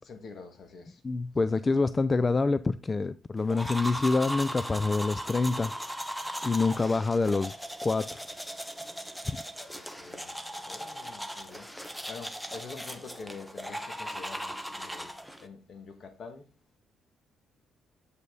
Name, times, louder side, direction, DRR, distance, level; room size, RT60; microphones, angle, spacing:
voice 1, 0.0-1.0 9.7-15.1 15.4-16.5, left 4 dB, 55° left, 1.8 m, -46 dB
voice 2, 1.0-5.7 6.4-7.5 7.8-8.2 9.3-9.4, left 3 dB, 25° left, 0.3 m, -26 dB
sound 1, 3.5-15.5, equal, ahead, 0.9 m, -38 dB
8.1 x 5.3 x 3.8 m
cardioid pair, 90°, 0 cm